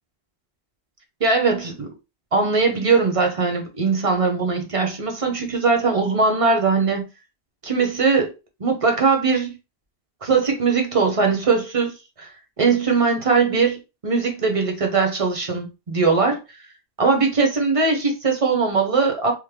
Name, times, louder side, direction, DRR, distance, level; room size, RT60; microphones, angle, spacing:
voice 1, 1.2-1.9 2.3-7.1 7.6-8.3 8.6-9.5 10.2-11.9 12.2-12.3 12.6-16.4 17.0-19.3, right 4 dB, 35° right, 0.8 m, -20 dB
3.2 x 2.1 x 3.5 m
omnidirectional pair, 1.1 m